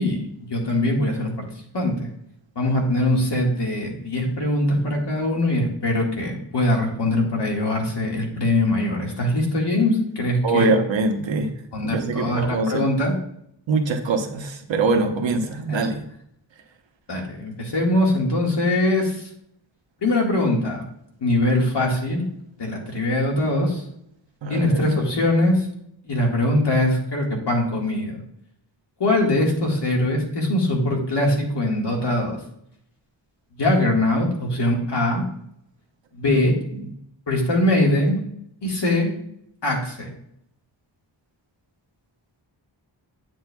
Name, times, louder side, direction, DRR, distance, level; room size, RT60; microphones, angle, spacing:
voice 1, 0.0-1.5 1.7-2.1 2.6-10.8 11.7-13.1 15.7-15.9 17.1-19.3 20.0-20.9 21.2-22.3 22.6-23.8 24.5-25.7 26.0-28.2 29.0-32.4 33.6-35.2 36.1-36.6 37.3-38.2 38.6-39.1 39.6-40.1, left 1 dB, 60° left, -1 dB, 1.9 m, -22 dB
voice 2, 10.4-11.5 11.9-12.9 13.7-16.0 24.4-24.9 36.3-36.4 36.8-36.9, right 3 dB, 75° right, 4 dB, 1.0 m, -23 dB
9.0 x 7.7 x 2.3 m, 0.72 s
wide cardioid pair, 155°, 46 cm